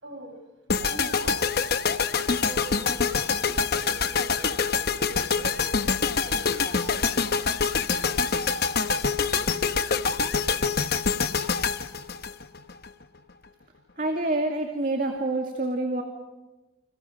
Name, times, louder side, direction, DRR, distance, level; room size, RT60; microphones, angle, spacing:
voice 1, 0.0-0.4 0.8-1.6 2.4-5.8 6.2-7.0, right 1 dB, 65° right, 3 dB, 6.6 m, -43 dB
sound 1, 0.7-12.9, left 5 dB, 50° left, 1.0 m, -25 dB
voice 2, 14.0-16.0, right 2 dB, 45° right, 2 dB, 2.4 m, -27 dB
29.5 x 27.5 x 5.1 m, 1.1 s
head